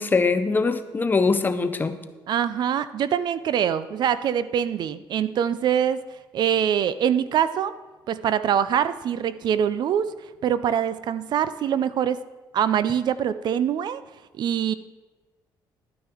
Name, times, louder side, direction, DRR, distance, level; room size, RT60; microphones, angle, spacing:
voice 1, 0.0-2.0, left 4 dB, 20° left, 10 dB, 0.8 m, -22 dB
voice 2, 2.3-6.0 6.3-7.7 8.1-10.1 10.4-12.2 12.5-14.0 14.4-14.7, right 9 dB, 55° right, 15 dB, 0.5 m, -24 dB
12.5 x 9.1 x 4.5 m, 1.2 s
cardioid pair, 115°, 9 cm